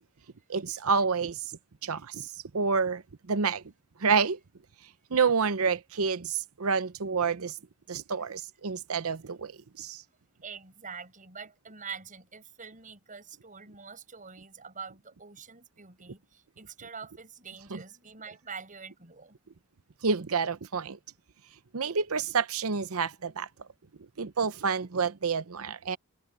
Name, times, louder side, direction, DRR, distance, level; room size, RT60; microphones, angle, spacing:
voice 1, 0.5-1.5 1.8-3.0 3.3-3.6 4.0-4.4 5.1-7.6 7.9-10.0 17.7-17.8 20.0-21.0 21.7-23.5 24.2-26.0, right 5 dB, 75° right, 0.8 m, -28 dB
voice 2, 10.4-19.4, right 5 dB, 35° right, 7.4 m, -45 dB
head